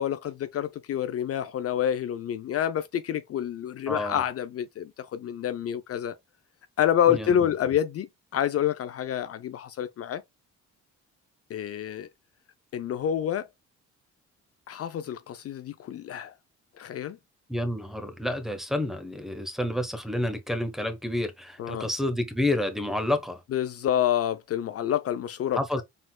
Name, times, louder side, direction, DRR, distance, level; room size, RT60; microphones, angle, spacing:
voice 1, 0.0-6.1 6.8-8.1 8.3-10.2 11.5-12.1 12.7-13.5 14.7-16.3 16.8-17.2 21.6-21.9 23.5-25.8, left 10 dB, 50° left, 0.5 m, -28 dB
voice 2, 3.9-4.2 7.1-7.5 17.5-23.4 25.5-25.8, left 1 dB, ahead, 0.9 m, -29 dB
4.2 x 3.8 x 2.2 m
cardioid pair, 90°, 30 cm